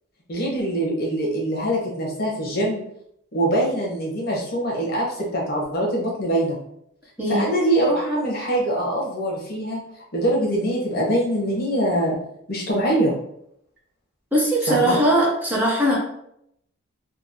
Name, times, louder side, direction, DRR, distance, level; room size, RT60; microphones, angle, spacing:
voice 1, 0.3-2.8 3.3-6.6 7.3-9.8 10.1-12.2 12.5-13.1 14.6-15.0, right 1 dB, 50° left, -3 dB, 0.9 m, -23 dB
voice 2, 14.3-16.0, right 1 dB, 10° right, -5 dB, 0.6 m, -20 dB
3.0 x 2.4 x 2.6 m, 0.74 s
head